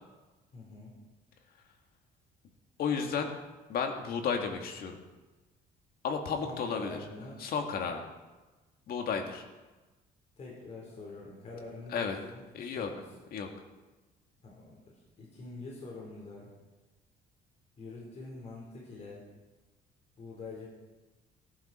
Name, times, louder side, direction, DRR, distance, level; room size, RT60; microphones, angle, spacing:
voice 1, 0.5-0.9 6.4-7.4 10.4-13.0 14.4-14.7 15.2-16.5 17.8-19.2 20.2-20.7, left 3 dB, 40° left, -3 dB, 4.4 m, -45 dB
voice 2, 2.8-3.3 3.7-5.0 6.0-7.0 7.4-8.0 8.9-9.4 11.9-12.2 12.5-12.9 13.3-13.5, left 6 dB, 65° left, 4 dB, 2.1 m, -32 dB
18.0 x 11.0 x 4.5 m, 1.2 s
cardioid pair, 110°, 17 cm